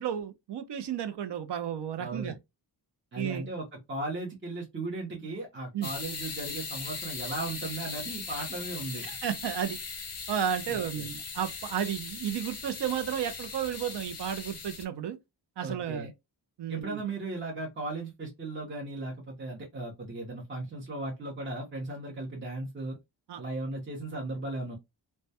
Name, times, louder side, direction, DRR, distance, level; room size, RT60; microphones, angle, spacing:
voice 1, 0.0-2.3 3.2-3.5 5.7-5.9 9.1-9.8 10.3-15.2 15.6-16.1 16.6-17.0 23.3-23.4, right 9 dB, 70° right, 0.5 m, -33 dB
voice 2, 2.0-2.4 3.1-9.1 10.7-11.1 15.6-16.1 16.7-23.0 23.4-24.8, right 2 dB, 25° right, 0.7 m, -36 dB
sound 1, 5.8-14.8, left 4 dB, 35° left, 0.5 m, -39 dB
2.2 x 2.1 x 2.7 m
wide cardioid pair, 120°, 43 cm